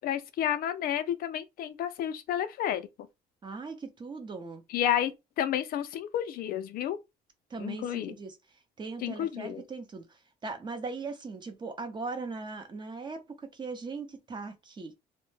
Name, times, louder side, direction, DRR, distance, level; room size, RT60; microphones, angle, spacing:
voice 1, 0.0-2.9 4.7-7.0 7.6-8.2 9.0-9.6, left 10 dB, 60° left, 0.4 m, -31 dB
voice 2, 3.4-4.6 7.5-8.4 8.8-14.9, right 4 dB, 25° right, 0.6 m, -39 dB
2.1 x 2.1 x 3.1 m
cardioid pair, 110°, 17 cm